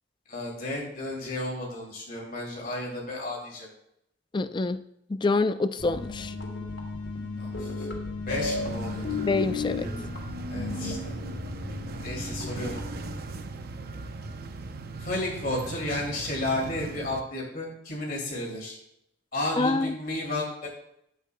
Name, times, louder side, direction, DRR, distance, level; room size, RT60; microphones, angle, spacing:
voice 1, 0.3-3.7 7.4-7.9 8.3-9.2 10.5-11.1 12.0-12.8 15.0-18.8 19.3-20.7, left 1 dB, 50° left, -2 dB, 2.6 m, -33 dB
voice 2, 4.3-4.8 5.1-6.3 9.2-9.9 19.6-19.9, left 3 dB, 25° left, 12 dB, 0.4 m, -26 dB
sound 1, 5.8-13.1, left 3 dB, 90° left, 2.3 m, -34 dB
sound 2, 8.3-17.2, right 3 dB, 55° right, 0.6 m, -39 dB
12.5 x 8.2 x 2.2 m, 0.76 s
head